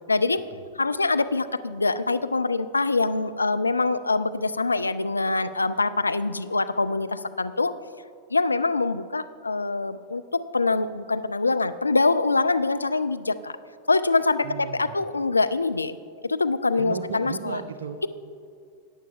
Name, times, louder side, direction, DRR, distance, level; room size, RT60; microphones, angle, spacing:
voice 1, 0.1-0.4 0.8-7.7 8.3-10.2 10.5-13.5 13.9-16.0 16.2-17.6, left 3 dB, 80° left, 11 dB, 0.4 m, -24 dB
voice 2, 14.4-15.0 16.8-18.1, right 6 dB, 65° right, 9 dB, 0.5 m, -35 dB
17.0 x 8.9 x 2.4 m, 2.4 s
figure-of-eight pair, 90°, 0 cm